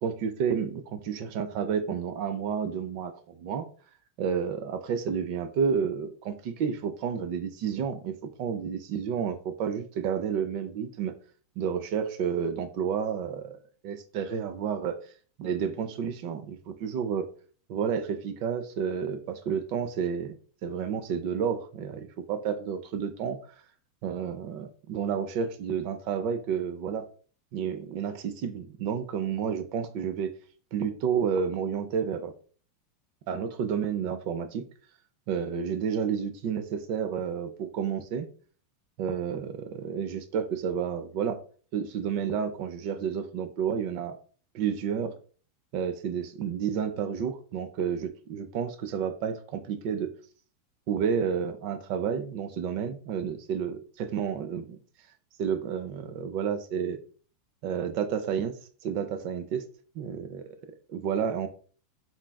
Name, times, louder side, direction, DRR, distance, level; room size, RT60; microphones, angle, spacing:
voice 1, 0.0-3.7 4.2-11.1 11.6-13.6 13.8-14.9 15.4-17.3 17.7-20.3 20.6-23.4 24.0-27.0 27.5-30.3 30.7-32.3 33.3-34.7 35.3-38.3 39.0-41.4 41.7-44.2 44.5-45.1 45.7-50.1 50.9-54.8 55.4-57.0 57.6-59.7 60.0-60.4 60.9-61.5, right 7 dB, 55° right, 8 dB, 0.4 m, -30 dB
3.7 x 2.3 x 2.2 m, 0.41 s
hypercardioid pair, 115°, 0 cm